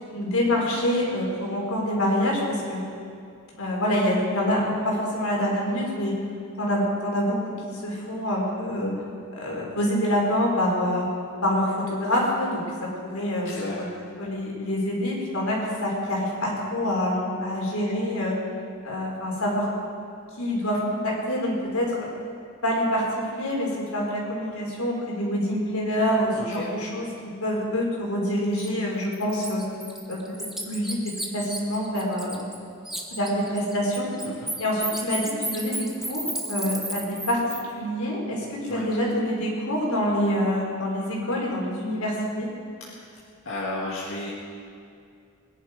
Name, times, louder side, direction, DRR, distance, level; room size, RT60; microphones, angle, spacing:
voice 1, 0.1-2.8 3.6-6.1 6.6-8.9 9.3-11.1 11.4-13.9 14.2-18.4 18.8-19.7 20.4-22.1 22.6-29.6 30.1-30.2 30.7-32.5 33.1-34.1 34.6-37.4 37.8-42.5, equal, 85° left, -3 dB, 4.3 m, -26 dB
voice 2, 13.4-13.8 26.4-26.7 34.2-34.5 38.7-38.8 42.8-43.1 43.5-44.3, left 2 dB, 65° left, -6 dB, 2.1 m, -33 dB
Bird, 28.6-28.7 29.1-32.6 32.8-37.6, right 1 dB, ahead, 1.3 m, -33 dB
22.0 x 10.5 x 5.2 m, 2.4 s
head